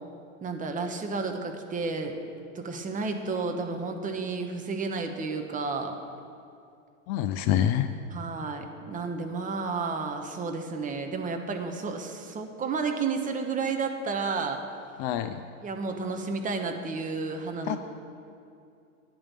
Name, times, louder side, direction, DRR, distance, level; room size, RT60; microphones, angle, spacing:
voice 1, 0.4-2.2 2.5-6.0 8.1-14.6 15.6-17.8, right 4 dB, 20° right, 4 dB, 1.1 m, -31 dB
voice 2, 7.1-7.9 15.0-15.4 17.7-17.8, left 10 dB, 40° left, 9 dB, 0.5 m, -26 dB
10.5 x 5.5 x 8.7 m, 2.5 s
hypercardioid pair, 115°, 39 cm